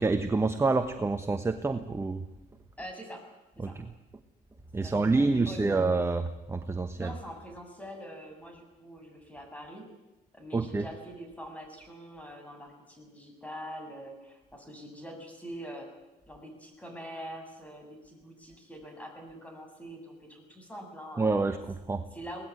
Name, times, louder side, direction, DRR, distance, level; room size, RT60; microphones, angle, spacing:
voice 1, 0.0-2.2 3.6-3.8 4.7-7.1 10.5-10.8 21.2-22.0, right 3 dB, 15° right, 8 dB, 1.2 m, -27 dB
voice 2, 2.8-3.2 3.6-3.7 4.7-5.8 7.0-9.9 10.3-15.9 16.3-21.6 22.1-22.4, equal, 10° left, 4 dB, 7.3 m, -44 dB
23.5 x 19.0 x 9.7 m, 1.0 s
cardioid pair, 110°, 17 cm